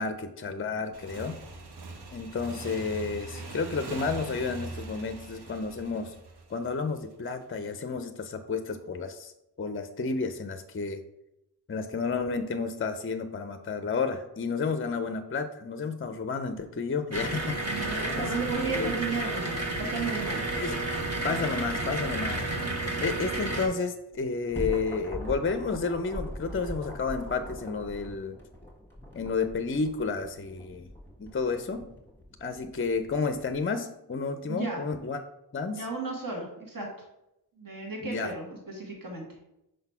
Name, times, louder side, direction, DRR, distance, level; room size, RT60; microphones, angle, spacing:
voice 1, 0.0-1.4 2.1-6.1 6.5-9.3 9.6-11.0 11.7-18.3 18.8-18.9 20.6-20.7 21.2-22.4 23.0-28.4 29.1-30.9 31.2-31.8 32.4-35.2 35.5-35.9 38.0-38.3, left 4 dB, 30° left, 9 dB, 0.5 m, -31 dB
Motorcycle / Engine, 0.9-7.3, right 3 dB, 70° right, 0.9 m, -42 dB
sound 1, 17.1-23.7, right 2 dB, 40° right, 1.3 m, -31 dB
voice 2, 17.6-20.5 34.5-34.8 35.7-36.9 37.6-39.2, right 4 dB, 55° right, -1 dB, 1.7 m, -34 dB
sound 2, 24.1-33.6, equal, 5° left, 1.6 m, -41 dB
5.1 x 4.0 x 5.5 m, 0.86 s
wide cardioid pair, 70°, 40 cm